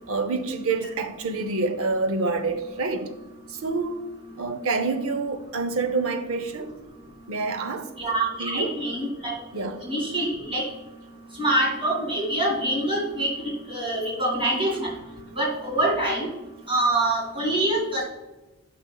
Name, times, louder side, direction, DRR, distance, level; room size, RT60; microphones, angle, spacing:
voice 1, 0.1-3.1 3.5-4.1 4.4-6.7 7.3-7.9 8.4-8.7 9.5-9.8, right 3 dB, 65° right, 0.7 m, -27 dB
voice 2, 8.0-10.6 11.4-13.3 13.7-14.9 15.4-16.3 16.7-18.0, right 1 dB, 25° right, 2.3 m, -25 dB
8.8 x 6.3 x 2.3 m
head